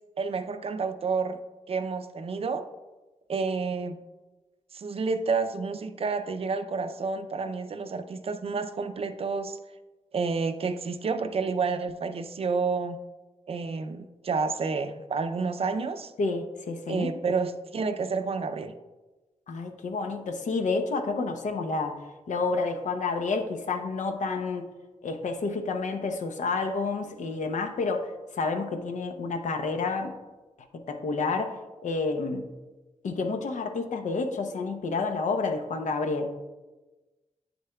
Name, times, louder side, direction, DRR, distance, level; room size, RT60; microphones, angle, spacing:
voice 1, 0.2-1.4 1.7-2.6 3.3-4.0 4.7-9.6 10.1-13.0 13.5-16.1 16.9-18.7, right 4 dB, 50° right, 9 dB, 0.5 m, -29 dB
voice 2, 16.2-17.1 19.5-22.0 22.3-24.7 25.0-30.1 30.7-32.4 33.0-36.3, left 3 dB, 80° left, 5 dB, 0.8 m, -29 dB
9.1 x 6.7 x 2.3 m, 1.1 s
wide cardioid pair, 130°, 12 cm